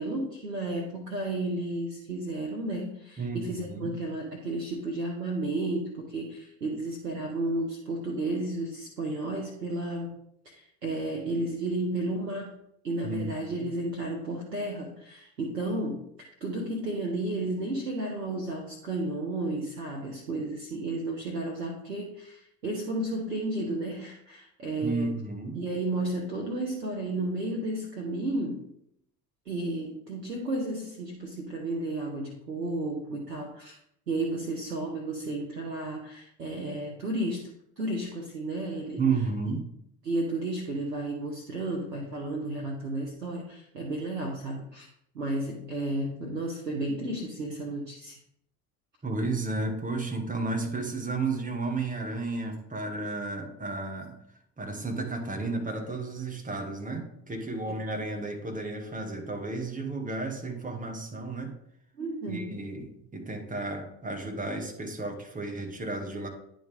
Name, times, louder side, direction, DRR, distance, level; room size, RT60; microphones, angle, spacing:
voice 1, 0.0-25.1 25.5-28.7 29.5-33.8 34.1-37.5 37.8-39.0 40.0-44.9 45.1-48.2 62.0-62.5, right 2 dB, 90° right, 1 dB, 0.9 m, -33 dB
voice 2, 3.2-3.9 13.0-13.5 24.8-25.6 39.0-39.7 49.0-54.2 54.6-61.6 62.3-66.3, right 3 dB, 15° right, 3 dB, 1.7 m, -32 dB
10.0 x 3.8 x 3.5 m, 0.72 s
figure-of-eight pair, 65°, 47 cm